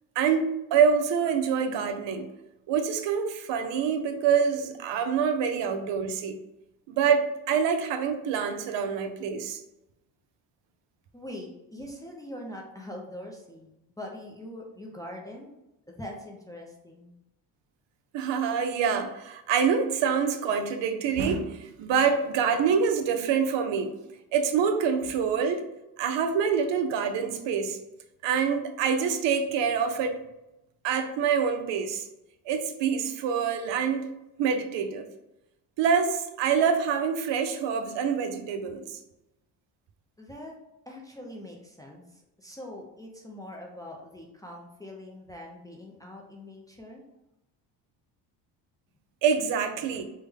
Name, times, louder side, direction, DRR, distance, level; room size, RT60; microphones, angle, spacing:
voice 1, 0.2-2.3 2.7-6.4 6.9-9.6 18.1-24.0 24.3-25.6 26.0-27.8 28.2-30.2 30.8-32.1 32.5-35.1 35.8-39.0 49.2-50.0, right 6 dB, 70° right, 7 dB, 0.6 m, -26 dB
voice 2, 11.1-15.5 15.9-17.1 40.2-40.6 40.9-47.0, left 1 dB, 10° left, -1 dB, 0.4 m, -43 dB
3.4 x 2.1 x 3.4 m, 0.91 s
cardioid pair, 110°, 46 cm